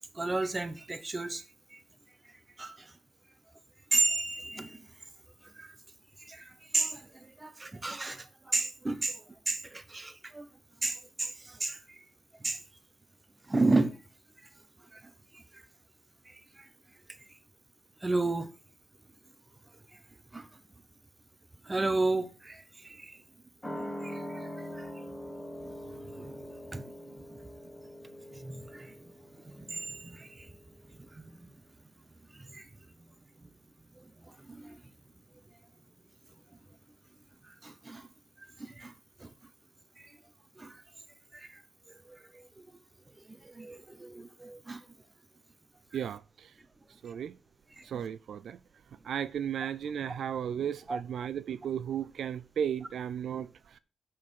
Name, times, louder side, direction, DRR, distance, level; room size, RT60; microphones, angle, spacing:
voice 1, 0.1-1.4 1.7-1.8 2.6-2.9 3.9-4.9 5.5-5.7 6.2-10.5 10.8-12.0 12.4-12.6 13.5-14.0 14.9-15.0 15.3-15.6 16.3-16.7 18.0-18.5 20.3-20.5 21.6-23.2 24.0-25.4 25.6-27.4 28.3-29.0 29.4-30.5 31.0-31.5 32.3-32.7 33.4-33.5 34.0-34.8 37.5-38.1 38.6-38.9 39.2-39.3 40.0-40.1 40.6-40.8 41.3-41.6 42.1-42.6 43.3-44.8 50.9-51.0, right 2 dB, 15° right, 0.9 m, -34 dB
sound 1, 23.6-30.7 31.0-31.1, equal, 10° left, 1.7 m, -43 dB
voice 2, 45.9-46.6 47.0-47.4 47.8-48.6 48.9-53.8, right 8 dB, 70° right, 0.4 m, -35 dB
7.5 x 5.6 x 6.2 m
wide cardioid pair, 145°, 0 cm